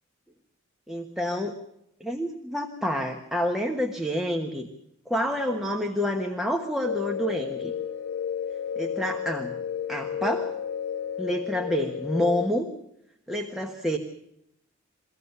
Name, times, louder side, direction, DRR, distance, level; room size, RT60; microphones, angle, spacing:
voice 1, 0.9-1.6 2.0-4.7 5.1-7.7 8.8-9.5 9.9-10.5 11.2-12.7 13.3-14.0, equal, ahead, 2 dB, 1.2 m, -28 dB
sound 1, 6.8-12.5, left 8 dB, 65° left, 2.6 m, -32 dB
24.0 x 16.0 x 6.8 m, 0.80 s
head